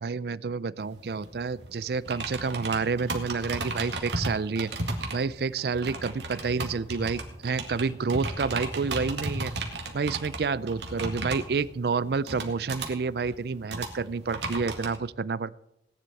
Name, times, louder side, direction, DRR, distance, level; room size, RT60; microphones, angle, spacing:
voice 1, 0.0-4.7 5.1-9.5 9.9-15.6, right 4 dB, 60° right, 19 dB, 0.4 m, -29 dB
sound 1, 0.8-15.0, right 2 dB, 75° right, 2.1 m, -35 dB
17.5 x 10.5 x 4.2 m, 0.83 s
head